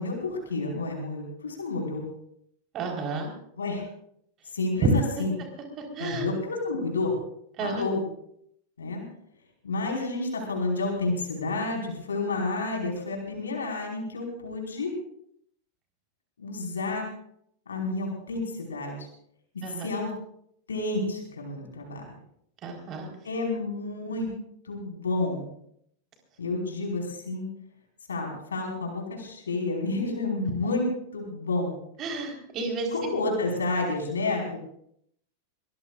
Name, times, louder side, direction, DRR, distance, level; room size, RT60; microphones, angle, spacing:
voice 1, 0.0-2.0 3.6-3.8 4.5-5.3 6.0-7.1 7.6-8.0 8.8-9.0 9.6-14.9 16.4-17.1 17.7-19.1 19.5-20.1 20.7-22.0 23.2-24.3 24.6-25.5 26.4-27.5 28.1-31.7 32.9-34.6, left 2 dB, 70° left, 0 dB, 5.1 m, -30 dB
voice 2, 2.7-3.3 4.8-4.9 5.2-5.3 5.8-6.3 7.6-7.7 19.6-19.9 22.6-23.1 30.4-30.5 32.0-32.9, right 4 dB, 35° right, 2 dB, 4.3 m, -30 dB
23.0 x 21.0 x 2.5 m, 0.71 s
figure-of-eight pair, 90°, 0 cm